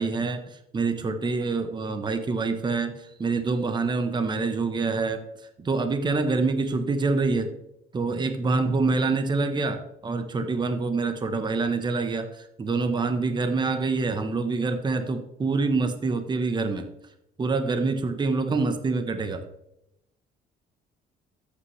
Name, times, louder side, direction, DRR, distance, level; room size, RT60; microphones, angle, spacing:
voice 1, 0.0-2.9 3.2-5.2 5.6-7.5 7.9-16.9 17.4-19.4, right 3 dB, 25° right, 7 dB, 1.1 m, -26 dB
13.5 x 8.5 x 3.3 m, 0.83 s
cardioid pair, 110°, 17 cm